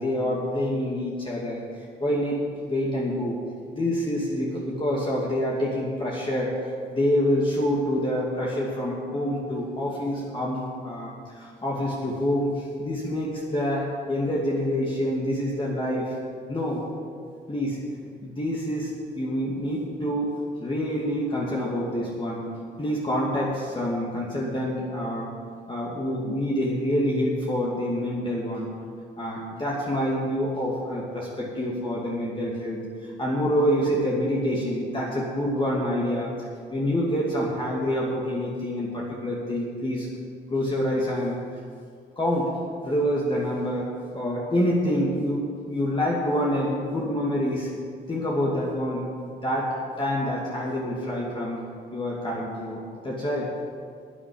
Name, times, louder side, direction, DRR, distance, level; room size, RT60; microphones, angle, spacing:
voice 1, 0.0-1.6 2.0-2.4 2.6-3.4 3.7-10.6 10.8-16.2 16.5-16.9 17.5-17.8 18.2-22.4 22.8-25.3 25.7-28.7 29.2-40.1 40.5-41.6 42.2-42.5 42.8-47.7 48.1-51.6 51.9-53.5, equal, 25° left, -4 dB, 2.4 m, -27 dB
11.0 x 9.1 x 8.6 m, 2.1 s
cardioid pair, 90°, 20 cm